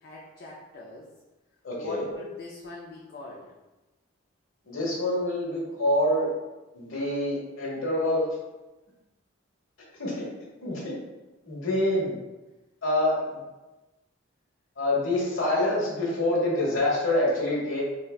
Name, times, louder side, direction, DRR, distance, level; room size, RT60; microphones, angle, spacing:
voice 1, 0.0-1.1 1.7-3.5, left 2 dB, 50° left, -4 dB, 0.4 m, -42 dB
voice 2, 1.6-2.0 4.7-6.3 6.7-8.2 10.0-10.2 10.6-11.0 11.5-12.1 12.8-13.3 14.8-17.8, left 1 dB, 75° left, -5 dB, 1.0 m, -26 dB
3.8 x 2.1 x 2.2 m, 1.1 s
head